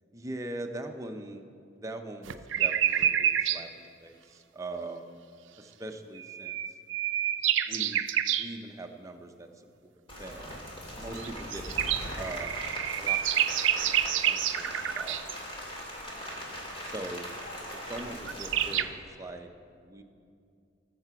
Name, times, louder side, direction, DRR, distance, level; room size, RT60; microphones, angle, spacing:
voice 1, 0.1-1.4 1.7-5.2 5.6-6.6 7.7-8.0 8.4-9.5 9.8-9.9 10.2-10.5 11.0-11.6 12.2-12.6 13.0-15.5 16.8-17.4 17.8-20.0, right 2 dB, 15° right, 5 dB, 0.6 m, -42 dB
sound 1, 2.3-3.6 6.2-8.5 11.2-15.3 18.0-18.1 18.3-18.8, right 10 dB, 80° right, 0.4 m, -28 dB
Rain, 10.1-18.8, equal, 30° left, 2.3 m, -40 dB
20.0 x 6.8 x 4.6 m, 2.4 s
head